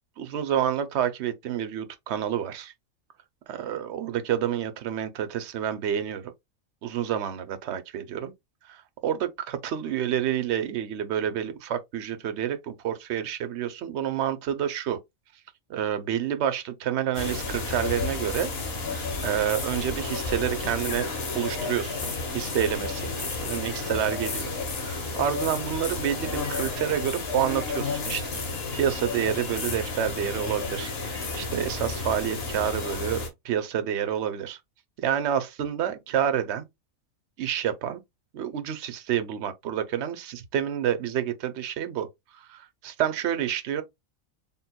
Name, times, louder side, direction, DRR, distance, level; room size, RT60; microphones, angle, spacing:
voice 1, 0.2-2.7 3.5-6.3 6.8-8.3 8.7-15.0 15.7-18.5 18.9-21.1 21.3-28.3 28.7-34.6 35.0-36.7 37.4-38.0 38.3-43.8, right 9 dB, 60° right, 0.9 m, -29 dB
sound 1, 17.1-33.3, left 3 dB, 50° left, 1.3 m, -32 dB
4.2 x 3.7 x 2.2 m
omnidirectional pair, 1.4 m